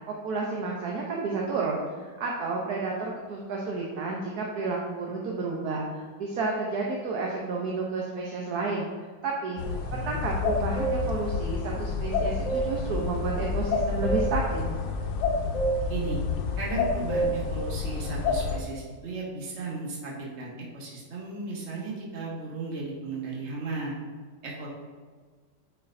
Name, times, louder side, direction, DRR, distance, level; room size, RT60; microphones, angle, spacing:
voice 1, 0.1-8.9 9.2-9.6 9.9-14.7, right 3 dB, 65° right, -2 dB, 1.2 m, -31 dB
sound 1, 9.6-18.6, left 2 dB, 80° left, 1.4 m, -28 dB
voice 2, 15.9-16.2 16.6-24.0 24.4-24.7, right 3 dB, 40° right, -4 dB, 1.5 m, -35 dB
9.4 x 4.8 x 2.6 m, 1.5 s
omnidirectional pair, 1.9 m